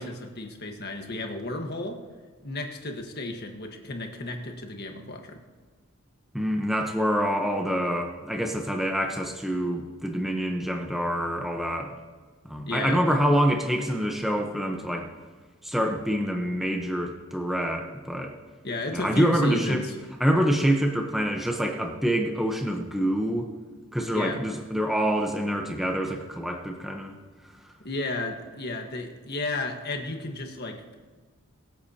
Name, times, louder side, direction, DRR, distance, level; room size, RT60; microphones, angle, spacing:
voice 1, 0.0-2.0 2.4-5.4 12.7-13.1 18.6-19.9 24.1-24.4 27.8-31.0, left 2 dB, 45° left, 3 dB, 1.5 m, -33 dB
voice 2, 6.3-11.9 12.4-15.1 15.6-18.4 18.9-19.8 20.2-23.5 23.9-27.2, equal, ahead, 2 dB, 0.9 m, -26 dB
23.5 x 8.3 x 2.9 m, 1.5 s
head